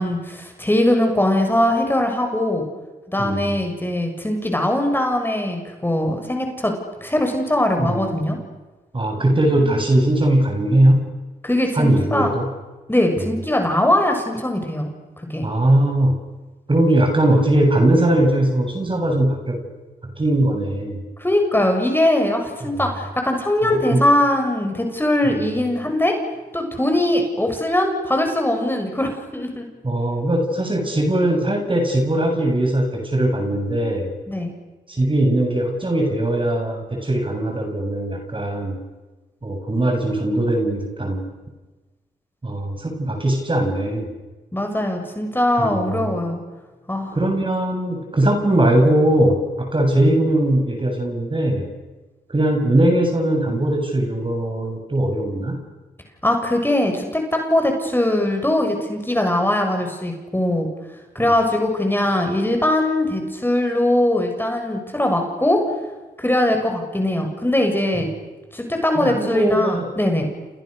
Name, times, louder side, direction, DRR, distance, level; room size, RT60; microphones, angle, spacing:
voice 1, 0.0-2.7 3.1-6.7 7.0-8.4 11.4-12.3 12.9-14.9 15.3-15.5 21.2-26.1 26.5-29.7 34.3-34.5 44.5-46.4 46.9-47.2 56.2-60.7 61.2-65.6 66.2-68.1 68.5-70.3, left 1 dB, 10° left, 3 dB, 7.2 m, -21 dB
voice 2, 3.2-3.5 7.8-8.3 8.9-11.0 11.7-12.5 13.2-13.3 15.4-16.2 16.7-19.7 20.0-21.0 22.7-22.8 23.7-24.1 25.2-25.5 29.8-34.1 34.9-38.8 39.4-41.3 42.4-44.1 45.6-46.1 47.1-51.7 52.3-55.6 61.2-61.3 68.0-68.1 68.9-69.9, right 1 dB, 30° right, 3 dB, 7.8 m, -20 dB
30.0 x 28.5 x 6.8 m, 1.2 s
hypercardioid pair, 40°, 17 cm